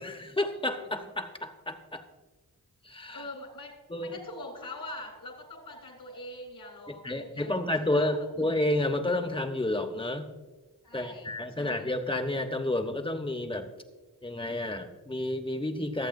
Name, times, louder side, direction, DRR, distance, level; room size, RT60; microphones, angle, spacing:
voice 1, 0.0-2.0 2.8-3.2 3.9-4.2 7.0-10.3 10.9-13.7 14.2-16.1, left 1 dB, 15° left, 6 dB, 1.2 m, -30 dB
voice 2, 3.1-3.7 4.0-8.4 10.8-11.3 11.6-11.9, left 1 dB, 75° left, 2 dB, 4.0 m, -43 dB
23.0 x 8.2 x 2.7 m, 1.2 s
wide cardioid pair, 80°, 36 cm